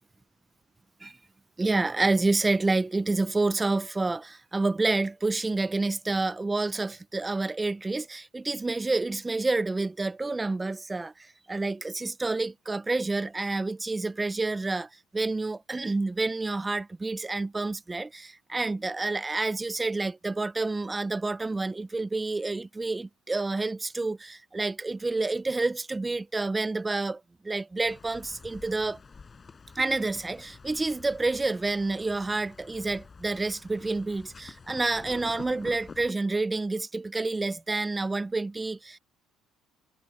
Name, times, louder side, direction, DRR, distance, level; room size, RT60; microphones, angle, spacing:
voice 1, 1.6-14.9 15.1-29.0 29.8-39.0, right 3 dB, 20° right, 0.8 m, -29 dB
sound 1, 27.8-36.1, left 5 dB, 30° left, 6.6 m, -48 dB
supercardioid pair, 75°, 0 cm